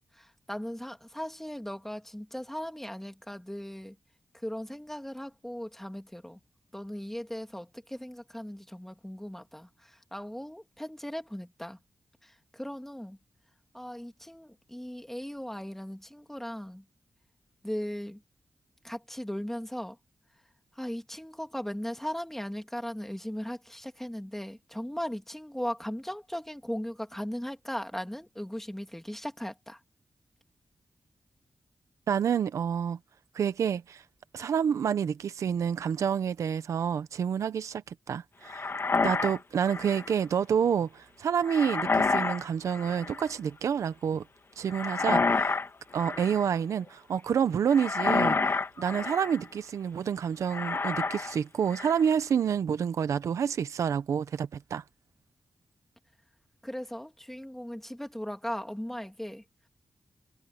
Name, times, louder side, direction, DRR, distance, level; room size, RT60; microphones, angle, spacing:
voice 1, 0.1-4.0 4.3-6.4 6.7-11.8 12.2-13.2 13.7-16.8 17.6-18.2 18.8-20.0 20.7-29.8 56.6-59.4, equal, 5° left, 3.0 m, -38 dB
voice 2, 32.1-33.0 33.3-34.0 34.3-38.6 39.0-44.2 44.6-45.6 45.9-54.8, right 7 dB, 85° right, 1.0 m, -28 dB
sound 1, 38.5-40.1 41.4-42.4 42.7-43.3 44.7-45.7 45.9-46.5 47.7-49.4 50.5-51.3 51.7-52.1, left 4 dB, 50° left, 2.6 m, -29 dB
cardioid pair, 50°, 5 cm